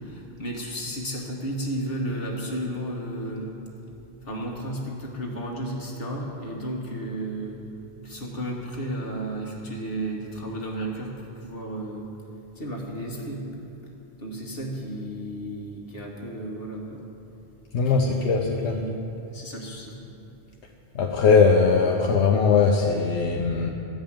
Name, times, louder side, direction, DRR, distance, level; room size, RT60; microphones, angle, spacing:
voice 1, 0.0-3.5 4.2-7.6 8.0-12.1 12.6-13.5 14.2-17.0 17.9-19.0 19.3-20.0, right 1 dB, 55° left, -2 dB, 1.8 m, -33 dB
voice 2, 17.7-18.7 20.9-23.7, left 5 dB, 80° left, 1 dB, 1.0 m, -20 dB
13.0 x 5.4 x 8.8 m, 2.8 s
omnidirectional pair, 1.1 m